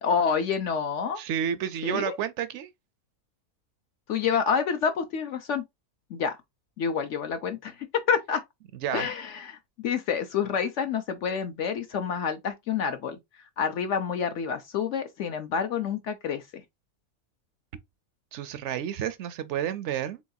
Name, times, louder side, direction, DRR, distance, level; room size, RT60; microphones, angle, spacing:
voice 1, 0.0-1.2 1.8-2.2 4.1-5.6 6.1-6.4 6.8-8.4 8.9-13.2 13.6-16.4, left 6 dB, 65° left, 0.8 m, -28 dB
voice 2, 1.2-2.7 8.8-9.1 18.3-20.2, right 9 dB, 65° right, 0.7 m, -30 dB
4.6 x 3.6 x 2.6 m
omnidirectional pair, 1.6 m